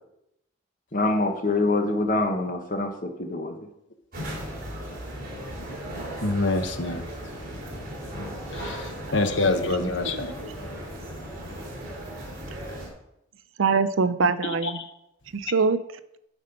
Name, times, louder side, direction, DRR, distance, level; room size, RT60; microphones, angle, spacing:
voice 1, 0.9-3.7, left 2 dB, 40° left, 5 dB, 1.2 m, -25 dB
sound 1, 4.1-12.9, equal, 45° right, 3.4 m, -36 dB
voice 2, 6.2-7.1 8.5-10.5 14.4-14.9, left 2 dB, 60° left, 7 dB, 1.1 m, -26 dB
voice 3, 9.1-9.5 9.8-10.2 13.6-14.8 15.3-15.8, right 5 dB, 80° right, 13 dB, 0.6 m, -24 dB
12.0 x 5.2 x 5.3 m, 0.84 s
head